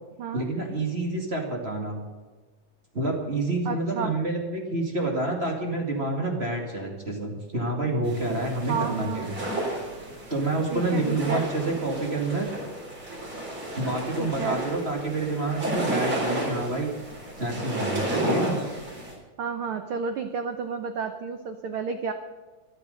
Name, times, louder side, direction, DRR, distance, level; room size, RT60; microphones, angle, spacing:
voice 1, 0.3-2.0 2.9-9.4 10.3-12.5 13.8-16.9 17.4-18.6, right 2 dB, 25° right, 1 dB, 1.8 m, -28 dB
voice 2, 3.7-4.1 8.7-9.3 10.7-11.4 14.2-14.6 19.4-22.1, right 6 dB, 90° right, 8 dB, 1.1 m, -31 dB
sound 1, 8.0-19.1, right 1 dB, 40° right, 4.6 m, -32 dB
13.5 x 12.0 x 6.5 m, 1.3 s
omnidirectional pair, 3.6 m